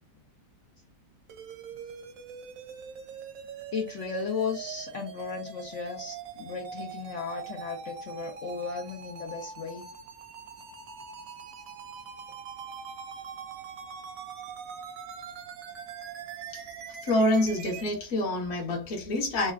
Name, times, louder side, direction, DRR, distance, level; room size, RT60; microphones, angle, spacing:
sound 1, 1.3-17.9, right 6 dB, 70° right, 0.8 m, -43 dB
voice 1, 3.7-9.8, left 5 dB, 65° left, 0.7 m, -35 dB
voice 2, 17.0-19.5, left 1 dB, 45° left, 1.2 m, -27 dB
3.3 x 2.2 x 2.3 m
omnidirectional pair, 1.8 m